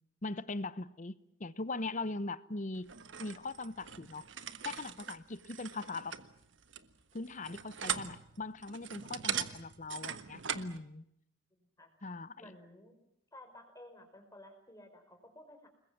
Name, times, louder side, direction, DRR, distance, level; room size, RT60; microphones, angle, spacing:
voice 1, 0.2-2.9 3.2-4.3 4.6-6.2 7.1-11.1 12.0-12.4, left 2 dB, 40° left, 0.9 m, -40 dB
sound 1, 2.9-10.8, right 8 dB, 75° right, 1.4 m, -41 dB
voice 2, 11.5-11.9 12.4-12.9 13.3-15.7, left 1 dB, 20° left, 5.3 m, -54 dB
30.0 x 21.0 x 7.4 m
head